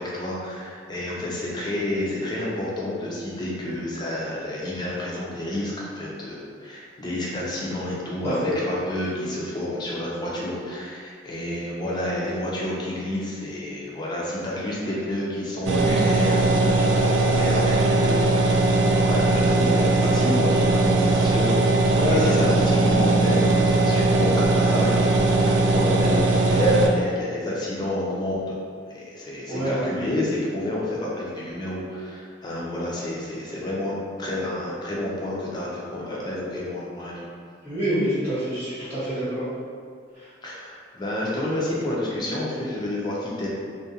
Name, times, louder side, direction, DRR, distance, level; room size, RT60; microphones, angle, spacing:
voice 1, 0.0-28.6 28.9-33.9 34.2-37.2 40.4-43.5, left 1 dB, 20° left, -5 dB, 0.4 m, -29 dB
voice 2, 8.2-8.5 21.9-22.7 29.5-29.9 37.6-39.5, equal, 15° right, -14 dB, 0.9 m, -26 dB
sound 1, 15.6-26.9, right 2 dB, 75° right, 0.3 m, -20 dB
2.4 x 2.1 x 2.7 m, 2.1 s
head